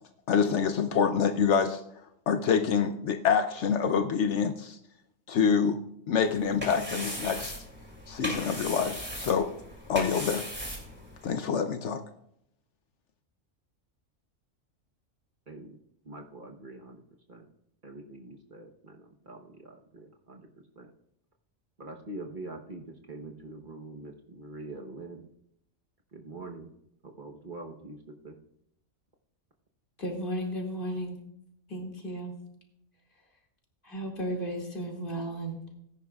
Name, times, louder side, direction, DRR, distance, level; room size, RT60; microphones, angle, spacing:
voice 1, 0.3-1.8 2.3-4.8 5.3-5.8 6.1-7.5 8.1-9.5 9.9-10.4 11.2-12.0, left 6 dB, 70° left, 8 dB, 1.0 m, -26 dB
sound 1, 6.2-11.3, equal, 10° right, 2.6 m, -38 dB
voice 2, 16.1-17.0 17.3-17.4 17.8-18.9 19.3-20.4 20.8-20.9 21.8-22.8 23.1-25.2 26.1-26.7 27.0-28.0 28.2-28.3, right 2 dB, 45° right, 2 dB, 1.2 m, -44 dB
voice 3, 30.0-31.2 31.7-32.3 33.8-35.7, right 1 dB, 45° left, 0 dB, 2.6 m, -34 dB
19.0 x 10.5 x 2.4 m, 0.75 s
omnidirectional pair, 1.3 m